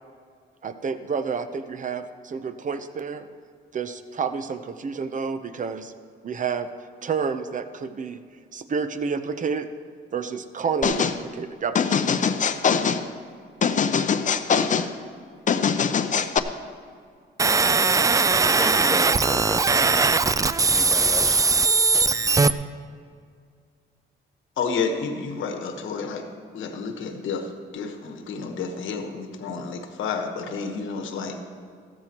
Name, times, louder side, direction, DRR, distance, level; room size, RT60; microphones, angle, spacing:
voice 1, 0.6-3.3 3.7-5.9 6.2-6.7 7.0-8.2 8.5-9.7 10.1-12.0, right 5 dB, 40° right, 10 dB, 0.8 m, -29 dB
sound 1, 10.8-11.2 11.8-13.0 13.6-14.9 15.5-16.4, left 6 dB, 40° left, 0.6 m, -22 dB
sound 2, 17.4-22.5, right 4 dB, 15° right, 0.3 m, -20 dB
voice 2, 18.3-20.1 20.7-21.4 21.7-22.2, left 1 dB, 10° left, 5 dB, 1.0 m, -34 dB
voice 3, 24.6-26.3 26.5-31.4, left 5 dB, 75° left, 5 dB, 1.3 m, -30 dB
14.5 x 14.0 x 3.0 m, 2.2 s
cardioid pair, 90°, 20 cm